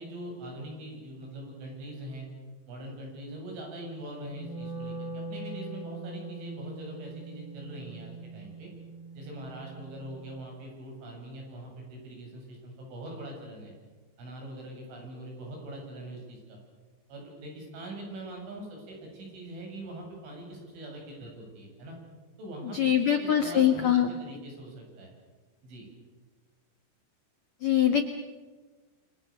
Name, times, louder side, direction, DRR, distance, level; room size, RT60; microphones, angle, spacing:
voice 1, 0.0-2.3 2.7-8.7 9.1-13.7 14.2-16.6 17.1-22.0 22.4-25.1 25.6-25.9, right 1 dB, 75° right, 0 dB, 10.5 m, -42 dB
Wind instrument woodwind instrument, 4.2-10.5, right 3 dB, 55° right, 7.6 m, -42 dB
voice 2, 22.7-24.1 27.6-28.0, left 10 dB, 70° left, 6 dB, 1.7 m, -23 dB
28.5 x 25.5 x 6.8 m, 1.3 s
omnidirectional pair, 5.5 m